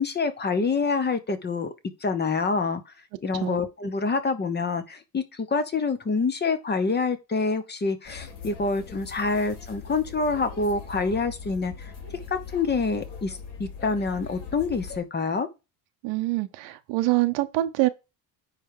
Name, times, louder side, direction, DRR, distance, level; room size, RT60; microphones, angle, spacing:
voice 1, 0.0-1.7 2.0-2.8 3.2-11.9 12.3-15.5, left 4 dB, 25° left, 1.1 m, -26 dB
sound 1, 8.0-15.0, left 6 dB, 60° left, 3.6 m, -41 dB
voice 2, 16.0-17.9, right 18 dB, 80° right, 1.0 m, -25 dB
9.8 x 3.4 x 4.8 m
cardioid pair, 135°, 44 cm